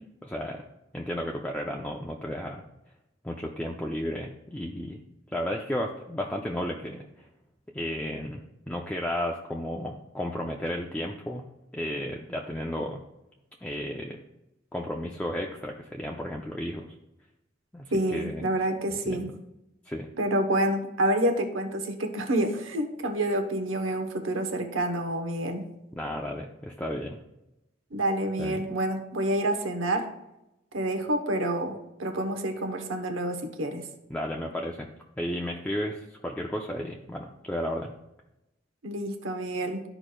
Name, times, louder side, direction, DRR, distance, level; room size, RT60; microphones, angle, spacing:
voice 1, 0.2-0.6 0.9-2.6 3.2-5.0 5.3-7.0 7.7-11.4 11.7-13.0 13.6-14.2 14.7-16.9 17.7-18.5 18.9-19.3 19.9-20.1 26.0-27.2 28.4-28.6 34.1-34.9 35.2-37.9, equal, 10° left, 0 dB, 0.5 m, -33 dB
voice 2, 17.9-19.3 20.2-25.7 27.9-30.1 30.7-33.8 38.8-39.8, right 1 dB, 85° right, 6 dB, 1.0 m, -28 dB
12.5 x 4.9 x 2.3 m, 0.90 s
head